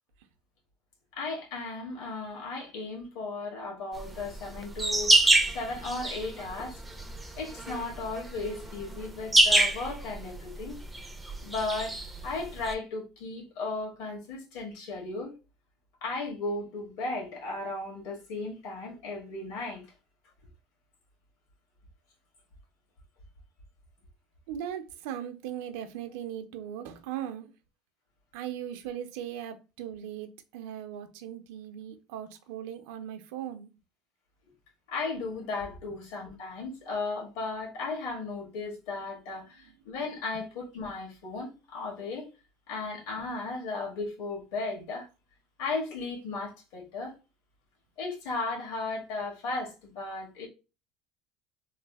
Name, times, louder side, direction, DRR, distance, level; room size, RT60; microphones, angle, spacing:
voice 1, 1.1-6.8 7.4-10.8 11.4-15.3 16.0-19.8 34.9-42.3 42.7-45.1 45.6-47.1 48.0-50.5, left 3 dB, 80° left, 1.5 m, -35 dB
sound 1, 4.0-12.7, right 2 dB, 5° right, 0.3 m, -27 dB
voice 2, 24.5-27.5 28.3-33.7, right 10 dB, 80° right, 0.5 m, -38 dB
3.1 x 2.0 x 3.3 m
cardioid pair, 160°, 0 cm